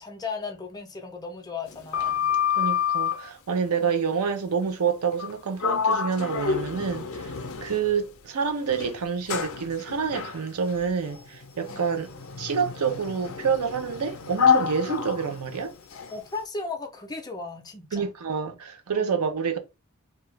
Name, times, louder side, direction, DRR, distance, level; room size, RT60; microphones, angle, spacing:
voice 1, 0.0-2.3 3.8-3.9 11.7-12.0 16.1-18.1 18.9-19.2, left 4 dB, 20° left, 0.6 m, -36 dB
Sliding door, 1.7-3.3 5.1-5.3 5.6-8.1 8.7-16.2, left 7 dB, 65° left, 0.5 m, -28 dB
voice 2, 2.6-12.1 12.4-15.7 17.9-19.6, right 6 dB, 85° right, 0.5 m, -28 dB
2.8 x 2.3 x 3.2 m
head